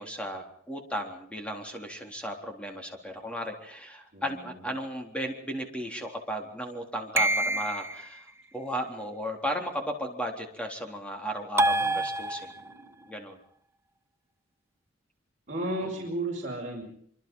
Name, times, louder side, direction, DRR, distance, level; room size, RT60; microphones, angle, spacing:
voice 1, 0.0-12.5 13.1-13.4 15.8-15.9, equal, 5° left, 2 dB, 3.8 m, -35 dB
voice 2, 4.1-4.7 12.5-12.9 15.5-16.8, right 1 dB, 40° right, -3 dB, 6.1 m, -34 dB
sound 1, 7.2-8.1 11.6-12.8, right 2 dB, 15° right, 0.9 m, -26 dB
25.5 x 25.0 x 5.6 m, 0.63 s
head